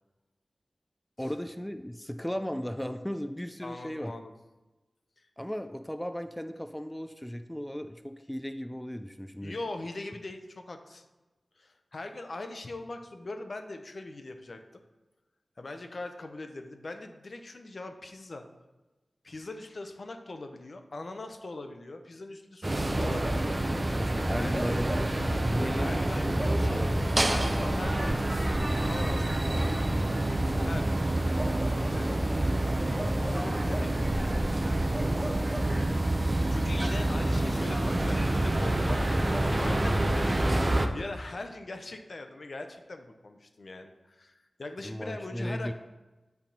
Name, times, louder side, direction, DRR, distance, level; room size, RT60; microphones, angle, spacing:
voice 1, 1.2-4.1 5.4-9.6 23.9-27.0 44.8-45.7, equal, 10° left, 8 dB, 0.4 m, -36 dB
voice 2, 3.6-4.3 5.2-5.3 9.4-11.0 11.6-14.6 15.6-18.5 19.2-23.6 24.4-24.7 25.7-26.8 27.2-28.5 28.9-29.7 30.6-31.0 31.8-32.3 33.2-34.2 34.7-35.0 36.5-39.0 39.5-44.3 44.6-45.7, left 2 dB, 65° left, 6 dB, 0.7 m, -41 dB
sound 1, 22.6-40.9, right 1 dB, 35° right, 0.6 m, -27 dB
Bark, 23.0-23.7 24.5-25.2 26.3-26.7 28.4-28.6 31.3-32.3 32.9-34.0 34.9-36.2 38.8-39.6, equal, 15° right, 1.1 m, -39 dB
7.4 x 3.5 x 5.3 m, 1.1 s
cardioid pair, 50°, 0 cm